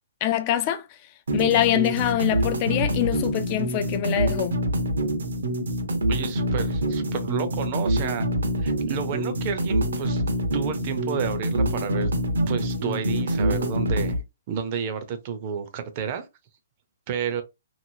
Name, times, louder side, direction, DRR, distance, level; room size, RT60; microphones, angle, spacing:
voice 1, 0.2-0.8 1.3-4.6, left 12 dB, 30° left, 0.4 m, -24 dB
sound 1, 1.3-14.2, right 1 dB, 85° right, 0.9 m, -26 dB
voice 2, 6.1-8.3 8.6-10.2 10.5-12.1 12.5-14.2 14.5-16.2 17.1-17.4, right 7 dB, 35° right, 0.6 m, -30 dB
3.0 x 2.5 x 2.6 m
hypercardioid pair, 155°, 0 cm